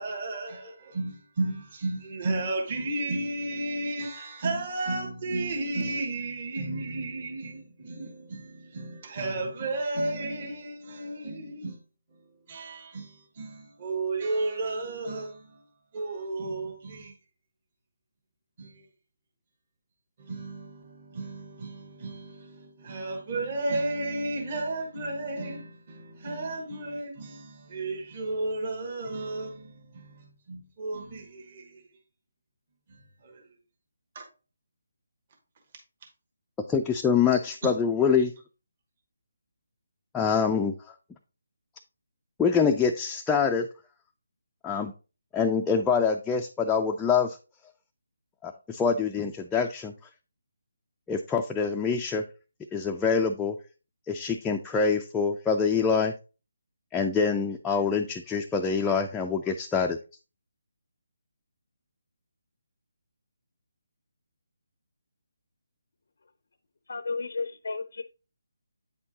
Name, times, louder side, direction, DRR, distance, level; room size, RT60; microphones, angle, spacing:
voice 1, 0.0-11.8 12.2-15.6 15.9-17.1 18.6-18.8 20.2-31.8 32.9-33.4 34.1-34.2, right 2 dB, 40° right, 1.3 m, -33 dB
voice 2, 36.7-38.3 40.1-40.7 42.4-43.7 44.6-44.9 45.3-47.4 48.4-49.9 51.1-52.2 52.7-53.5 54.1-56.1 56.9-60.0, left 5 dB, 10° left, 0.3 m, -25 dB
voice 3, 66.9-68.0, left 4 dB, 70° left, 0.5 m, -33 dB
8.4 x 4.4 x 2.8 m
hypercardioid pair, 165°, 0 cm